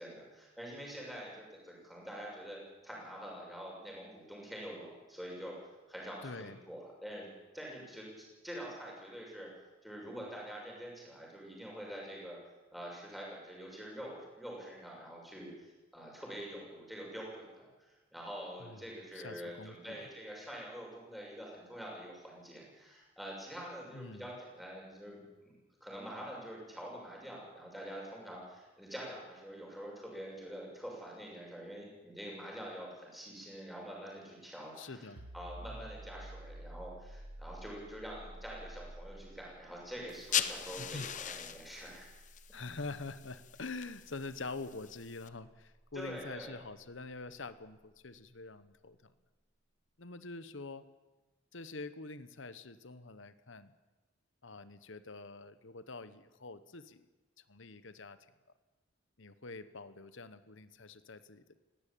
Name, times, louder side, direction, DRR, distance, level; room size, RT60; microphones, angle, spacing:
voice 1, 0.0-2.6 2.8-5.6 5.9-7.3 7.5-9.5 9.8-12.4 12.7-25.5 25.8-35.1 35.3-42.1 45.9-46.5, equal, ahead, -3 dB, 6.4 m, -46 dB
voice 2, 6.2-6.6 18.6-18.9 19.1-20.1 23.9-24.4 34.8-35.3 35.7-35.9 40.8-41.1 42.5-49.1 50.0-50.9 51.5-53.7 54.4-57.1 57.5-58.3 59.2-61.6, left 3 dB, 70° left, 13 dB, 1.1 m, -46 dB
sound 1, 35.2-46.6, right 1 dB, 80° right, 1.3 m, -52 dB
sound 2, 40.1-45.3, left 9 dB, 35° left, 0.9 m, -40 dB
19.5 x 17.0 x 8.7 m, 1.2 s
head